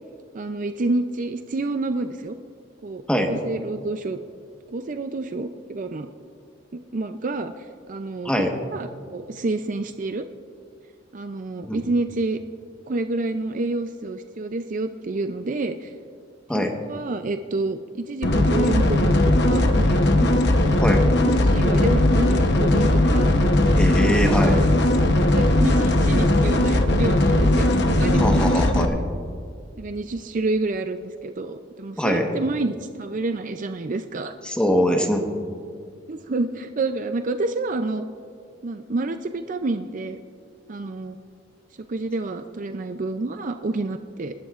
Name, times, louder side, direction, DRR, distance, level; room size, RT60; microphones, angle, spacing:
voice 1, 0.3-2.4 2.8-4.2 4.7-6.1 6.7-10.2 11.1-12.4 12.9-15.9 16.5-20.3 21.1-23.4 24.2-24.7 25.3-28.7 29.8-34.3 36.1-38.0 38.6-40.2 40.7-41.2 41.8-44.3, right 2 dB, 40° right, 8 dB, 0.5 m, -28 dB
sound 1, 18.2-28.9, left 1 dB, 60° left, 1.0 m, -18 dB
voice 2, 23.7-24.6 28.2-29.0 32.0-32.3 34.4-35.2, equal, 5° left, 2 dB, 1.2 m, -22 dB
27.0 x 12.5 x 2.5 m, 2.2 s
head